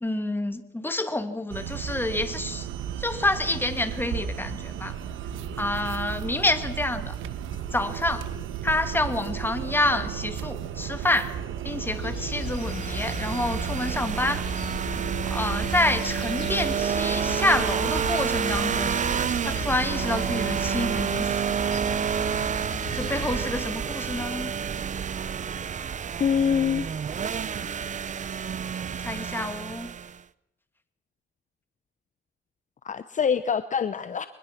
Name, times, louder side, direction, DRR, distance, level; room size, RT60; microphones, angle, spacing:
voice 1, 0.0-2.7 3.0-4.9 5.6-7.2 7.7-8.3 8.6-11.3 11.6-14.4 15.3-19.0 19.4-21.8 22.9-24.5 29.0-29.9, left 2 dB, 10° left, 9 dB, 2.1 m, -28 dB
sound 1, 1.5-21.1, right 9 dB, 90° right, 1.2 m, -34 dB
sound 2, 11.8-23.4, left 5 dB, 55° left, 8.0 m, -38 dB
sound 3, 12.4-30.2, right 7 dB, 40° right, 0.7 m, -29 dB
voice 2, 26.2-26.9 32.8-34.3, left 7 dB, 40° left, 12 dB, 0.9 m, -24 dB
23.5 x 21.0 x 6.0 m, 0.81 s
cardioid pair, 90°, 20 cm